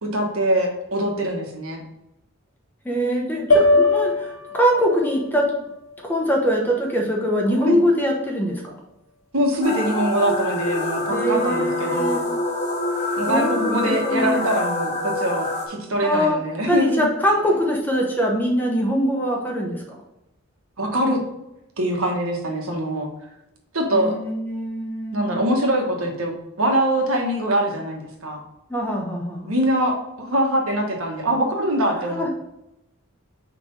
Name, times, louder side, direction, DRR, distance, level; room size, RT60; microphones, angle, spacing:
voice 1, 0.0-1.8 7.6-7.8 9.3-12.2 13.2-17.1 20.8-21.2 21.8-23.1 23.7-24.2 25.1-28.4 29.5-32.3, right 1 dB, 75° right, 1 dB, 1.4 m, -23 dB
voice 2, 2.8-5.5 6.0-8.8 11.1-12.2 13.3-14.4 16.0-16.4 16.7-20.0 23.9-25.4 28.7-29.5 32.1-32.3, equal, 10° left, -1 dB, 1.1 m, -23 dB
sound 1, 3.5-7.8, left 2 dB, 60° left, 1.2 m, -23 dB
sound 2, 9.6-15.7, left 2 dB, 30° left, 1.1 m, -26 dB
6.0 x 3.4 x 5.4 m, 0.86 s
head